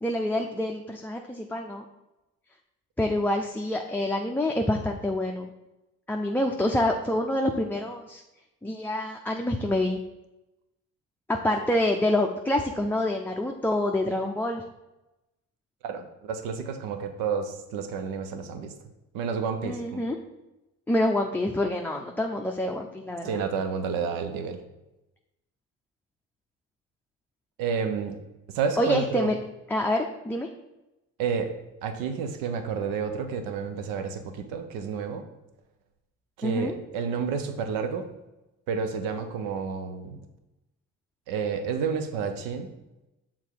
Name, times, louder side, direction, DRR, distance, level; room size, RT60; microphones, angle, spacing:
voice 1, 0.0-1.9 3.0-5.5 6.1-8.2 8.6-10.0 11.3-14.6 19.6-20.2 20.9-23.4 28.8-29.4 29.7-30.5 36.4-36.7, left 1 dB, 5° left, 1 dB, 0.6 m, -27 dB
voice 2, 15.8-18.7 19.1-20.0 23.2-24.6 27.6-28.2 28.5-29.3 31.2-31.5 31.8-35.3 36.4-38.1 38.7-40.3 41.3-42.7, right 6 dB, 80° right, 8 dB, 0.9 m, -30 dB
6.7 x 3.8 x 4.6 m, 0.97 s
supercardioid pair, 65°, 34 cm